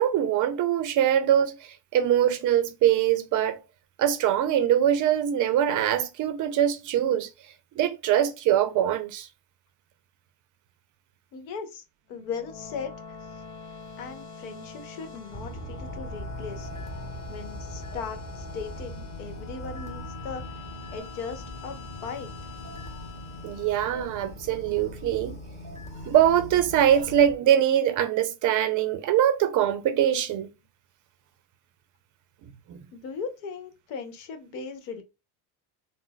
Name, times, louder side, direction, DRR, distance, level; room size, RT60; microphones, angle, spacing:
voice 1, 0.0-3.6 4.0-7.3 7.8-9.3 23.4-25.4 26.1-30.5 32.7-32.8, right 10 dB, 40° right, 0.4 m, -23 dB
voice 2, 11.3-12.9 13.2-13.4 14.0-16.7 17.3-20.5 20.9-22.5 32.9-35.0, left 5 dB, 85° left, 1.0 m, -38 dB
sound 1, 12.1-24.5, left 4 dB, 35° left, 1.5 m, -44 dB
sound 2, 15.3-27.4, equal, 15° left, 0.7 m, -40 dB
3.8 x 2.0 x 2.2 m
cardioid pair, 125°, 50 cm